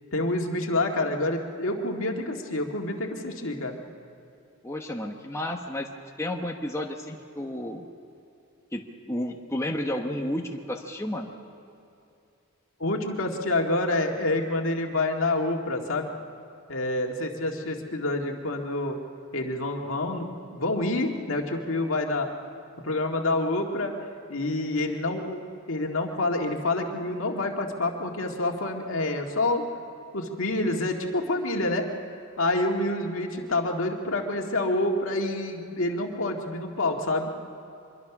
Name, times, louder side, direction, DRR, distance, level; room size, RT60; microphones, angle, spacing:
voice 1, 0.1-3.8 12.8-16.1 16.7-19.0 19.3-22.3 22.8-23.9 24.3-25.4 25.7-29.6 30.1-31.9 32.4-37.3, left 2 dB, 70° left, 2 dB, 2.1 m, -27 dB
voice 2, 4.6-5.9 6.2-7.8 8.7-11.3, left 1 dB, 15° left, 1 dB, 1.1 m, -32 dB
25.0 x 22.5 x 6.0 m, 2.6 s
head